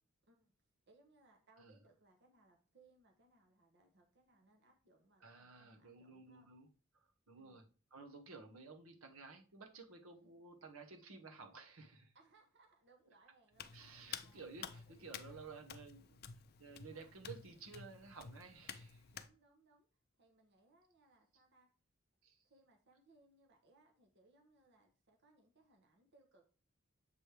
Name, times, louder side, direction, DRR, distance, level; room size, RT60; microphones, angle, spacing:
voice 1, 0.9-6.5 7.4-7.6 12.1-13.7 14.2-14.4 14.7-15.7 16.9-17.1 19.1-19.9 20.2-21.7 22.4-26.5, right 2 dB, 55° right, 2 dB, 1.0 m, -70 dB
voice 2, 5.2-6.7 6.9-7.6 7.9-12.1 13.7-16.2 16.6-19.1 22.2-22.4, right 4 dB, 75° right, 3 dB, 1.2 m, -54 dB
Hands, 13.5-19.3, left 7 dB, 50° left, 0.5 m, -52 dB
7.4 x 3.4 x 4.6 m, 0.37 s
head